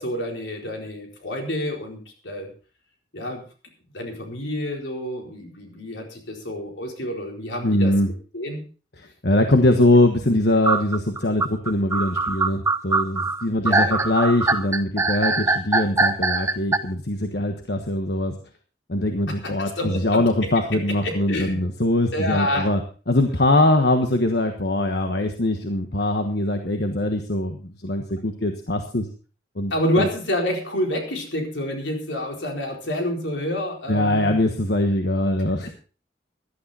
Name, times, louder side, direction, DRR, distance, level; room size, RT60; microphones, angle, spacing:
voice 1, 0.0-2.5 3.1-3.4 3.9-7.9 8.3-8.6 13.6-14.0 19.4-20.2 21.0-21.6 22.1-22.7 29.7-34.4, left 1 dB, 80° left, 2 dB, 4.3 m, -28 dB
voice 2, 7.6-8.1 9.0-18.3 18.9-22.8 23.1-29.1 29.6-30.1 33.9-35.7, left 1 dB, 60° left, 5 dB, 1.3 m, -22 dB
sound 1, 10.6-16.8, right 3 dB, 15° right, 0.7 m, -22 dB
16.5 x 11.5 x 4.2 m, 0.37 s
head